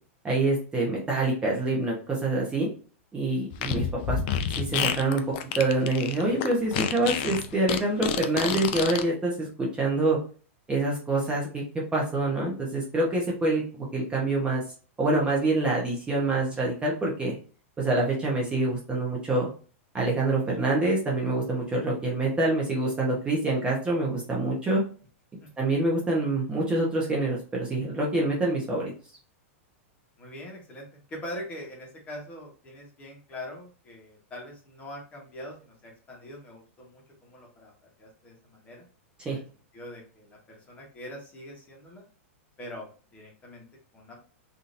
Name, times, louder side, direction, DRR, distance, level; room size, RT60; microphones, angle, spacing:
voice 1, 0.2-2.7 3.1-4.2 4.6-5.2 5.6-10.2 10.7-14.6 15.0-17.3 17.8-19.5 19.9-24.8 25.6-28.9 39.2-39.4, right 2 dB, 15° right, -3 dB, 0.9 m, -26 dB
Fart, 3.5-9.0, left 8 dB, 45° left, 0.4 m, -29 dB
voice 2, 30.2-38.9 39.2-39.4 39.7-42.0 42.6-43.6 43.9-44.2, left 1 dB, 20° left, -2 dB, 1.2 m, -43 dB
3.6 x 2.8 x 2.5 m, 0.40 s
hypercardioid pair, 145°, 7 cm